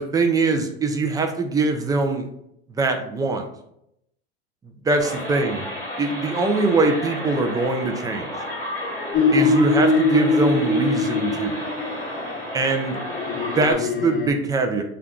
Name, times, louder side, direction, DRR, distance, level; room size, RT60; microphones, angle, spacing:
voice 1, 0.0-2.3 2.7-3.5 4.8-5.6 6.0-8.3 9.3-11.6 12.5-13.0 13.3-14.8, right 3 dB, 10° right, 5 dB, 0.4 m, -22 dB
sound 1, 5.0-13.7, left 1 dB, 5° left, 1.1 m, -32 dB
sound 2, 9.1-12.1 13.1-14.3, left 3 dB, 30° left, 0.6 m, -21 dB
3.6 x 2.2 x 3.6 m, 0.78 s
hypercardioid pair, 90°, 33 cm